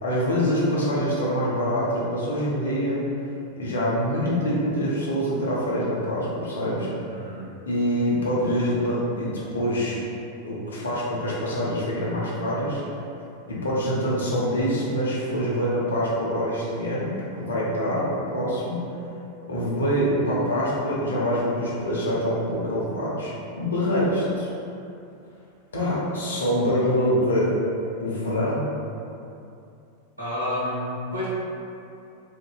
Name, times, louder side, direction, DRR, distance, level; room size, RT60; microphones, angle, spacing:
voice 1, 0.0-3.0 3.6-6.9 7.7-10.0 10.4-12.8 13.5-17.1 17.4-18.8 19.5-23.3 23.6-24.5 25.7-27.6 28.0-28.6, equal, 70° left, -6 dB, 0.6 m, -25 dB
voice 2, 6.9-7.5 30.2-31.3, left 1 dB, 85° right, -9 dB, 0.7 m, -30 dB
2.5 x 2.2 x 2.3 m, 2.6 s
figure-of-eight pair, 90°, 0 cm